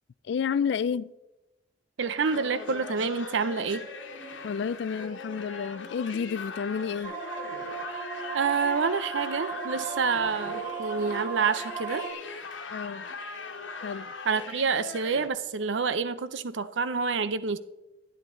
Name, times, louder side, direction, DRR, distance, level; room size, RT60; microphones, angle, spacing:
voice 1, 0.3-1.1 4.4-7.2 12.7-13.1 13.8-14.1, left 6 dB, 60° left, 0.3 m, -30 dB
voice 2, 2.0-3.9 8.3-12.1 14.3-17.6, right 5 dB, 70° right, 0.6 m, -28 dB
sound 1, 2.2-15.3, left 4 dB, 80° left, 1.3 m, -40 dB
sound 2, 7.0-12.1, right 6 dB, 15° right, 2.2 m, -36 dB
11.0 x 10.5 x 3.8 m
head